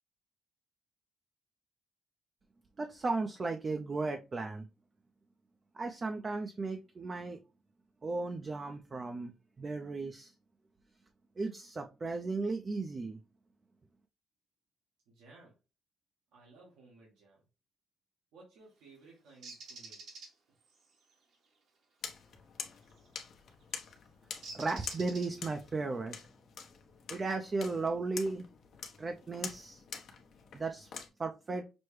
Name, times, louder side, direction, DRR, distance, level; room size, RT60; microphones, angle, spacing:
voice 1, 2.8-4.7 5.7-7.4 8.0-10.3 11.4-13.2 24.5-26.2 27.1-28.4 29.0-29.8 30.5-30.9 31.2-31.6, right 3 dB, 35° right, 4 dB, 0.5 m, -35 dB
voice 2, 15.0-15.6 16.3-17.4 18.3-20.0, right 3 dB, 90° right, -4 dB, 1.6 m, -58 dB
Bird, 19.4-20.3 22.9-23.1 24.4-25.6, right 3 dB, 75° right, 1.4 m, -47 dB
sound 1, 22.0-31.1, left 6 dB, 65° left, 0.9 m, -46 dB
6.0 x 2.2 x 3.2 m, 0.29 s
cardioid pair, 90°, 0 cm